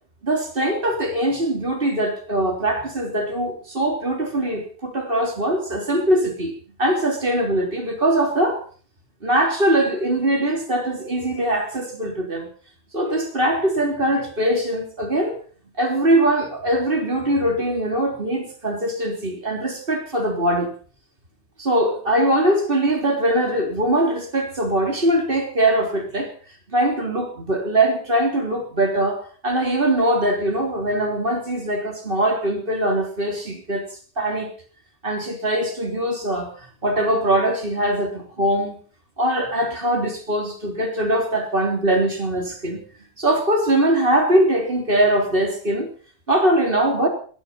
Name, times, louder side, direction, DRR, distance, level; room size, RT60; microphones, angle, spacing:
voice 1, 0.2-6.5 6.8-8.6 9.2-12.5 12.9-15.4 15.8-20.7 21.6-26.3 26.7-33.8 34.2-34.5 35.0-38.8 39.2-42.8 43.2-45.9 46.3-47.1, right 1 dB, 50° right, 2 dB, 3.7 m, -22 dB
17.5 x 12.0 x 5.6 m, 0.43 s
omnidirectional pair, 1.2 m